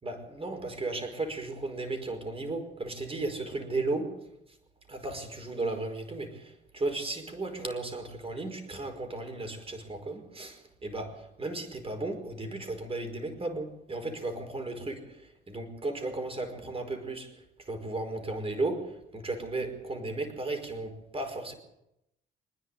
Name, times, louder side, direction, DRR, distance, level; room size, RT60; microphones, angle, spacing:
voice 1, 0.0-4.3 4.9-21.5, right 2 dB, 30° right, 4.9 m, -35 dB
25.5 x 10.5 x 9.7 m
cardioid pair, 90°, 20 cm